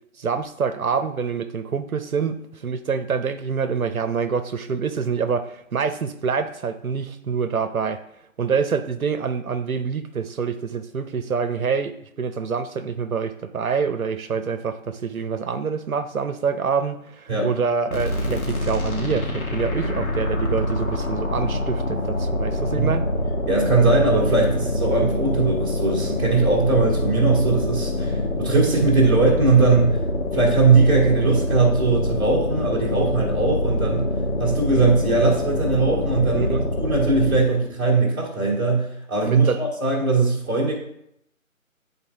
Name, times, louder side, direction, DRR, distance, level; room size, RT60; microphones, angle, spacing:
voice 1, 0.2-8.0 8.4-23.1 36.2-36.7 39.2-39.6, right 6 dB, 80° right, 9 dB, 0.7 m, -26 dB
sound 1, 17.9-37.5, left 2 dB, 80° left, 1.7 m, -25 dB
voice 2, 23.5-30.0 30.3-34.1 34.4-40.7, right 3 dB, 15° right, -9 dB, 1.7 m, -20 dB
9.8 x 4.0 x 3.5 m, 0.75 s
figure-of-eight pair, 175°, 42 cm